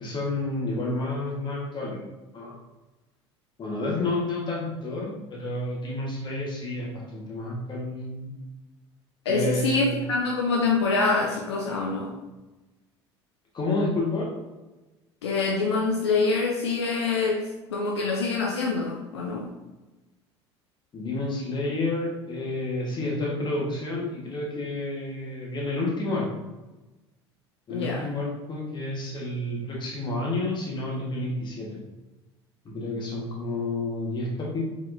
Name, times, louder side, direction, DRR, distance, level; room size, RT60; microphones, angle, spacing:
voice 1, 0.0-2.0 2.3-2.6 3.6-8.3 9.3-10.1 13.5-14.3 20.9-26.3 27.7-31.8 32.6-34.6, left 2 dB, 30° left, -3 dB, 1.4 m, -30 dB
voice 2, 9.3-12.1 15.2-17.4 17.7-19.5 27.7-28.0, left 3 dB, 75° left, -1 dB, 0.5 m, -25 dB
4.5 x 3.5 x 2.7 m, 1.1 s
figure-of-eight pair, 65°, 14 cm